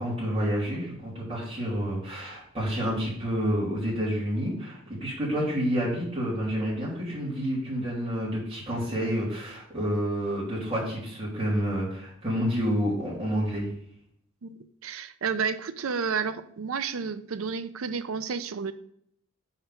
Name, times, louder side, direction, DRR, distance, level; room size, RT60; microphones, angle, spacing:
voice 1, 0.0-13.7, equal, 25° right, -7 dB, 2.9 m, -29 dB
voice 2, 14.4-18.7, right 5 dB, 70° right, 12 dB, 0.5 m, -31 dB
5.7 x 4.4 x 5.8 m, 0.69 s
head